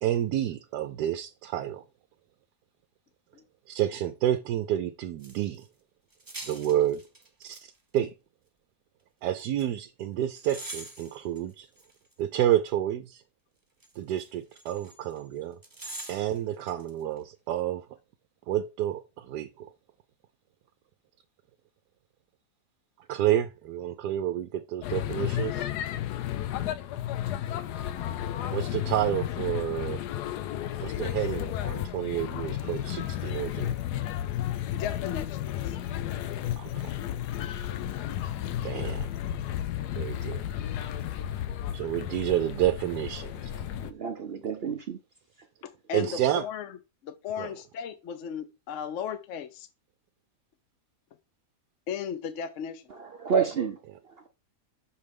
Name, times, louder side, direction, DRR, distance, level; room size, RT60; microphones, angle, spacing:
voice 1, 0.0-1.8 3.7-5.7 6.5-7.0 7.4-8.1 9.2-11.7 12.2-13.2 14.0-15.6 16.1-17.9 18.5-19.7 23.1-25.7 28.5-30.0 30.8-33.7 36.6-37.0 38.6-39.1 39.9-40.4 41.7-43.5 45.9-46.4 47.4-47.5 53.9-54.0, right 12 dB, 85° right, 1.2 m, -29 dB
sound 1, 5.2-5.6 6.1-7.6 7.9-8.0 9.4-9.7 10.4-12.7 13.8-15.2 15.6-16.9 17.2-17.3, right 2 dB, 15° right, 0.9 m, -44 dB
sound 2, 24.8-43.9, left 11 dB, 80° left, 1.2 m, -33 dB
voice 2, 34.8-35.8 45.6-46.7 47.0-49.7 51.9-52.8, left 8 dB, 60° left, 0.9 m, -36 dB
voice 3, 43.8-45.0 53.2-53.8, right 6 dB, 55° right, 0.7 m, -28 dB
6.7 x 3.2 x 5.2 m
omnidirectional pair, 1.7 m